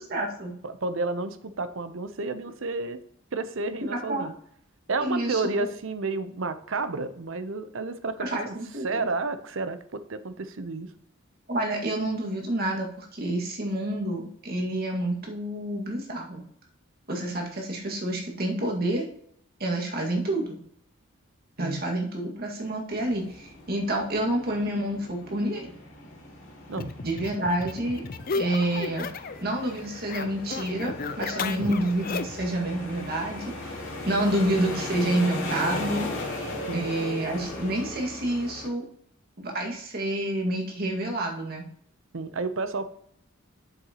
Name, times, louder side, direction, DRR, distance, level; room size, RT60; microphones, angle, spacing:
voice 1, 0.1-0.5 3.8-4.3 5.0-5.4 8.2-9.1 11.5-16.4 17.1-19.1 19.6-20.6 21.6-25.7 27.0-28.0 28.3-29.1 29.4-36.1 36.7-38.8 39.4-41.7, right 1 dB, 45° right, 0 dB, 1.9 m, -28 dB
voice 2, 0.6-3.0 3.3-4.3 4.9-8.5 8.8-10.9 21.6-21.8 26.7-26.9 36.7-36.9 42.1-42.8, right 3 dB, 65° right, 11 dB, 0.7 m, -31 dB
sound 1, 22.9-38.7, left 2 dB, 65° left, 2.7 m, -38 dB
sound 2, 26.7-29.4 29.7-32.5, left 4 dB, 45° left, 0.5 m, -34 dB
8.0 x 7.4 x 3.0 m, 0.65 s
head